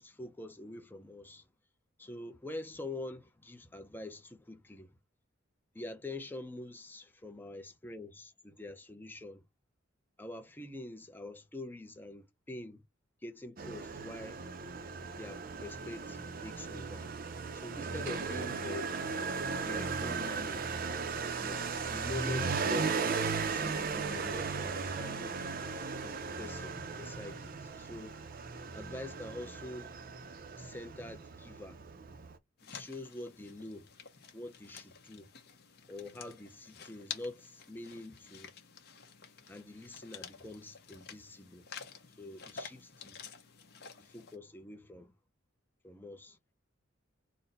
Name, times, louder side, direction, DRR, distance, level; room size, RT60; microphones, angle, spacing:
voice 1, 0.0-1.5 2.0-4.9 5.7-9.4 10.2-12.8 13.2-14.4 15.2-17.1 17.5-19.0 19.6-20.7 21.4-25.4 26.0-28.2 28.7-29.9 30.6-31.8 32.7-33.9 34.3-35.3 35.9-38.5 39.5-41.6 42.2-43.2 44.0-45.1 45.8-46.4, left 2 dB, 10° left, 0.5 m, -45 dB
Motorcycle, 13.6-32.4, right 5 dB, 45° right, 0.5 m, -37 dB
sound 1, 32.6-44.4, left 6 dB, 50° left, 0.9 m, -50 dB
4.1 x 2.1 x 4.0 m
head